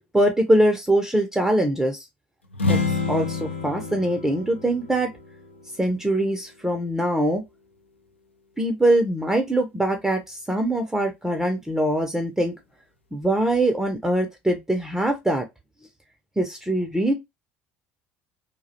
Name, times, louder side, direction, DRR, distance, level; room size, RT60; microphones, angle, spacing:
voice 1, 0.1-2.1 2.7-2.8 3.1-5.1 5.8-7.4 8.6-12.5 13.1-15.5 16.4-17.1, right 1 dB, 5° right, 0.4 m, -22 dB
sound 1, 2.5-6.3, left 4 dB, 90° left, 0.4 m, -28 dB
2.3 x 2.1 x 2.6 m
figure-of-eight pair, 60°, 6 cm